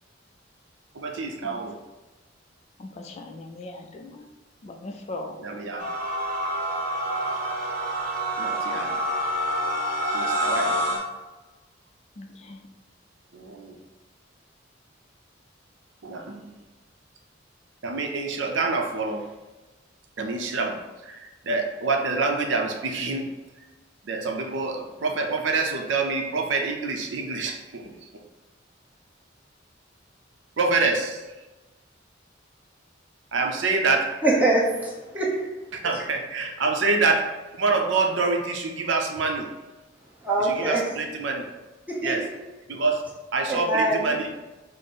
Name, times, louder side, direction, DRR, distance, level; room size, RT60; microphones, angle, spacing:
voice 1, 0.9-1.8 5.4-5.9 8.4-9.1 10.1-10.8 13.3-13.8 16.0-16.6 17.8-19.2 20.2-23.3 24.0-28.1 30.6-31.3 33.3-34.2 35.8-37.3 37.6-39.5 40.4-41.4 42.0-42.2 42.7-43.0 43.3-44.3, right 3 dB, 70° right, 3 dB, 0.6 m, -26 dB
voice 2, 2.8-4.3 4.6-5.4 10.9-11.0 12.2-12.6, left 2 dB, 35° left, 4 dB, 0.3 m, -39 dB
sound 1, 5.8-11.0, equal, 50° right, 0.9 m, -27 dB
voice 3, 34.2-35.5 40.2-40.9 41.9-42.3 43.5-44.2, right 2 dB, 10° right, -5 dB, 0.9 m, -24 dB
5.1 x 2.0 x 4.1 m, 1.1 s
head